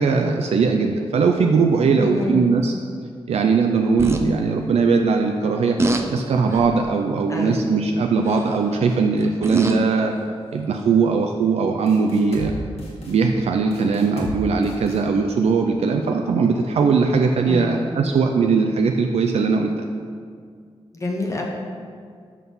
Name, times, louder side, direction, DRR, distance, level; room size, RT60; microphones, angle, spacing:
voice 1, 0.0-2.7 3.3-10.1 10.5-12.5 13.1-19.7, right 4 dB, 85° right, 3 dB, 0.4 m, -20 dB
voice 2, 2.0-2.5 7.3-7.7 17.5-17.9 20.9-21.4, left 2 dB, 30° left, -1 dB, 0.7 m, -27 dB
sound 1, 4.0-4.2 5.8-6.1 6.5-6.8 8.3-8.6 9.2-9.9 10.8-10.9, right 2 dB, 25° right, 0.5 m, -24 dB
sound 2, 11.9-12.5 12.8-13.1 13.7-14.4 14.6-15.0, left 1 dB, 80° left, 1.4 m, -34 dB
6.2 x 5.7 x 5.5 m, 2.1 s
wide cardioid pair, 160°, 11 cm